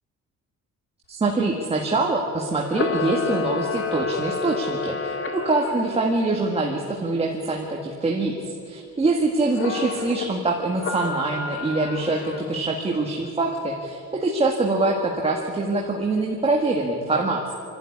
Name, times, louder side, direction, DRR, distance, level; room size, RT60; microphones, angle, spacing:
voice 1, 1.1-17.4, right 2 dB, 20° right, 1 dB, 1.8 m, -24 dB
Camera, 2.6-6.0 9.5-10.3 10.8-12.6, left 4 dB, 45° left, 2.0 m, -29 dB
28.5 x 12.5 x 9.8 m, 2.4 s
cardioid pair, 160°, 30 cm